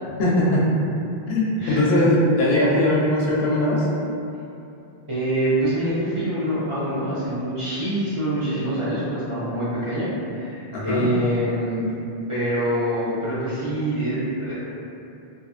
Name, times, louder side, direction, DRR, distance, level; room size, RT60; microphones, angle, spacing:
voice 1, 0.2-0.6 1.3-3.9 10.7-11.1, left 1 dB, 75° left, -5 dB, 0.8 m, -20 dB
voice 2, 5.1-11.9 12.3-14.5, right 1 dB, 35° right, -12 dB, 0.6 m, -25 dB
2.8 x 2.4 x 2.3 m, 2.7 s
omnidirectional pair, 1.0 m